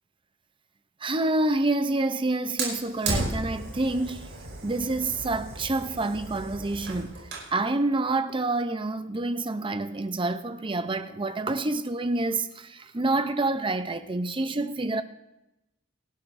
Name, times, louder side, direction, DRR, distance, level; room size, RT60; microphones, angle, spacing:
voice 1, 1.0-4.3 4.6-7.2 7.5-15.0, right 2 dB, 25° right, 0.6 m, -27 dB
Fire, 2.6-7.5, right 2 dB, 60° right, 4.9 m, -34 dB
27.5 x 12.0 x 2.6 m
head